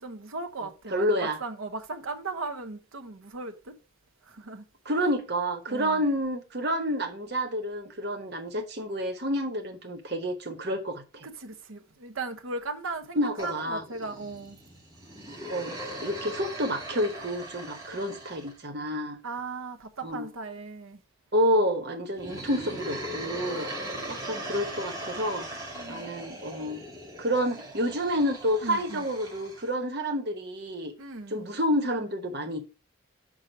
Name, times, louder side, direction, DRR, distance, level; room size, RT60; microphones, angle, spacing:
voice 1, 0.0-3.8 4.2-4.6 5.0-5.1 5.7-6.0 11.2-14.6 19.2-21.0 23.4-24.3 25.7-26.1 28.6-29.1 31.0-31.4, right 3 dB, 75° right, 0.9 m, -38 dB
voice 2, 0.6-1.4 4.8-11.3 13.2-13.8 15.5-15.7 16.0-19.2 20.0-20.3 21.3-23.7 24.1-25.5 25.9-26.8 27.2-30.9 31.3-32.6, equal, 50° right, 1.1 m, -29 dB
sound 1, 13.4-18.6 22.1-29.7, right 1 dB, 15° right, 2.1 m, -39 dB
6.3 x 4.8 x 5.2 m
head